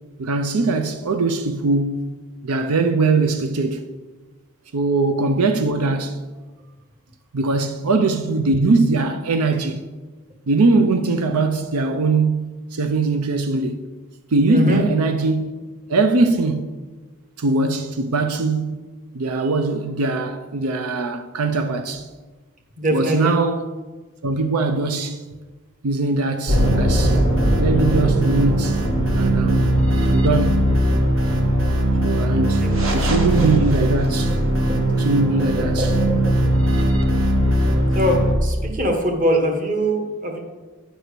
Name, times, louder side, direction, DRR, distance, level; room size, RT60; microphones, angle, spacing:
voice 1, 0.2-2.1 2.4-3.9 4.7-6.2 7.3-9.9 10.5-13.8 14.3-15.5 15.9-16.7 17.4-18.8 19.1-22.1 22.9-23.7 24.2-25.3 25.8-27.2 27.6-28.8 29.2-29.8 30.1-30.6 32.0-32.6 32.9-34.4 35.0-35.9, right 3 dB, 85° right, 0.6 m, -21 dB
voice 2, 14.5-14.8 22.8-23.3 32.6-32.7 33.4-33.5 34.6-34.8 35.4-36.2 37.7-40.4, equal, 35° right, 1.3 m, -22 dB
sound 1, 26.5-38.4, right 1 dB, 65° right, 1.4 m, -19 dB
10.0 x 4.5 x 6.7 m
head